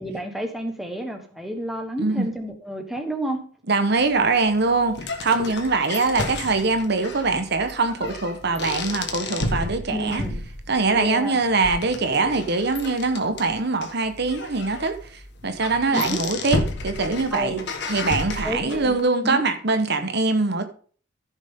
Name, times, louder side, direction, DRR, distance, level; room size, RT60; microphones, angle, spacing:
voice 1, 0.0-3.4 9.9-10.4 11.0-11.3 15.9-16.2 17.3-17.6 18.4-19.0 19.2-19.4, right 1 dB, ahead, 1.4 m, -30 dB
voice 2, 3.7-10.2 10.7-20.6, right 3 dB, 60° right, 1.2 m, -23 dB
sound 1, 4.0-19.0, left 2 dB, 65° left, 1.6 m, -32 dB
14.5 x 6.2 x 3.8 m
head